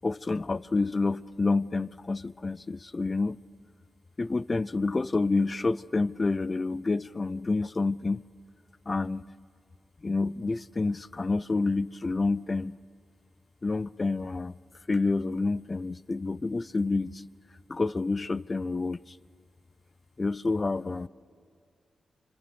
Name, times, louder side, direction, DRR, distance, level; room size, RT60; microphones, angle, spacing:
voice 1, 0.0-3.4 4.2-8.2 8.9-9.3 10.0-12.7 13.6-14.5 14.9-17.3 17.7-19.2 20.2-21.1, left 3 dB, 35° left, 0.5 m, -28 dB
26.0 x 26.0 x 7.0 m
cardioid pair, 85°, 0 cm